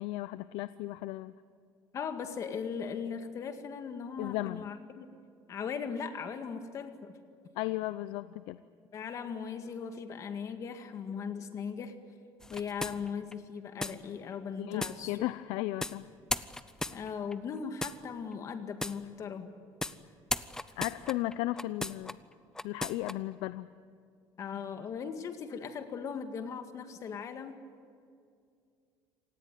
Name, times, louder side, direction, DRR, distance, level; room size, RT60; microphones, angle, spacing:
voice 1, 0.0-1.3 4.2-4.6 7.6-8.6 14.6-16.0 20.8-22.2 22.6-23.7, left 17 dB, 85° left, 14 dB, 0.6 m, -35 dB
voice 2, 1.9-5.1 5.5-7.1 8.9-12.0 12.5-15.2 16.9-19.5 24.4-27.6, left 6 dB, 40° left, 8 dB, 2.0 m, -38 dB
sound 1, 12.4-13.3 13.8-14.0 14.8-15.0 15.8-15.9 16.3-17.3 17.8-18.0 18.8-19.0 19.8-20.0 20.3-22.1 22.5-23.1, left 2 dB, 5° left, 0.6 m, -35 dB
26.5 x 18.5 x 9.3 m, 2.3 s
cardioid pair, 145°, 8 cm